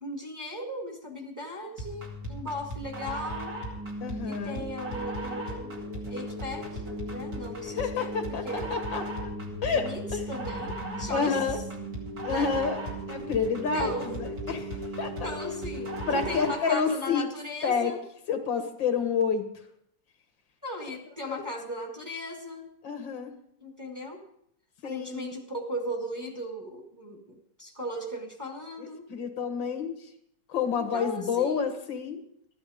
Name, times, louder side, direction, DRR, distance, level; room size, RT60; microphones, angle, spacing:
voice 1, 0.0-3.5 4.2-5.8 6.1-6.8 7.1-8.1 8.4-8.7 9.7-11.6 12.3-12.5 13.5-14.2 15.2-18.0 20.6-22.7 23.6-24.2 24.8-29.1 30.7-31.7, equal, 10° right, 1 dB, 1.9 m, -37 dB
sound 1, 1.8-16.7, right 1 dB, 50° right, 3.1 m, -36 dB
voice 2, 4.0-4.7 7.7-9.3 9.6-10.2 11.1-11.6 12.2-12.8 13.1-15.3 16.1-17.3 17.6-18.0 18.3-19.5 21.3-21.4 22.8-23.3 24.8-25.3 28.8-30.1 30.5-32.2, left 6 dB, 75° left, 7 dB, 2.1 m, -29 dB
14.0 x 11.5 x 5.0 m, 0.72 s
omnidirectional pair, 2.1 m